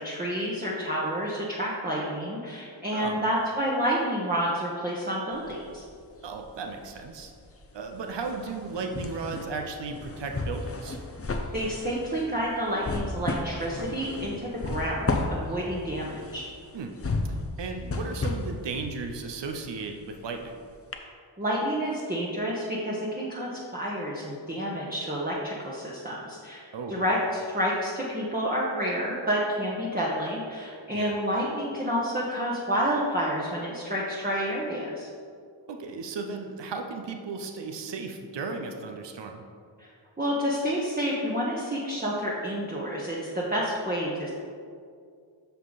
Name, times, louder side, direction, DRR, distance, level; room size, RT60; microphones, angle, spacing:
voice 1, 0.0-5.8 11.5-16.4 21.4-35.1 39.8-39.9 40.2-44.3, equal, 20° right, -5 dB, 1.2 m, -29 dB
sound 1, 5.3-6.5 6.8-20.5 20.9-21.0, left 2 dB, 30° left, 0.8 m, -34 dB
voice 2, 6.2-7.3 7.7-11.0 16.7-16.9 17.2-20.6 26.7-27.0 30.9-31.2 35.7-39.4, right 4 dB, 60° right, 4 dB, 0.8 m, -35 dB
8.2 x 5.7 x 4.1 m, 2.2 s
cardioid pair, 45°, 48 cm